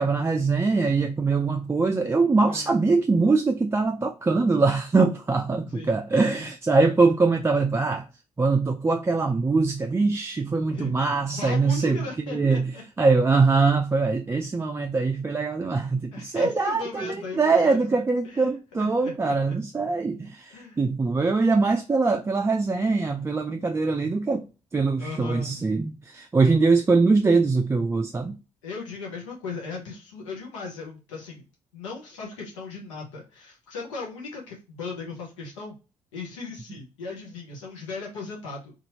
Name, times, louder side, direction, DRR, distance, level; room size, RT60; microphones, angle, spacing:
voice 1, 0.0-8.1 8.4-12.7 13.0-24.5 24.7-28.4, right 3 dB, 15° right, 0.3 m, -23 dB
voice 2, 5.7-6.0 6.3-6.5 10.7-12.8 16.1-19.6 20.5-20.8 25.0-25.6 28.6-31.4 31.7-35.8 36.1-38.7, left 4 dB, 90° left, 0.7 m, -37 dB
2.7 x 2.5 x 2.8 m
hypercardioid pair, 45°, 15 cm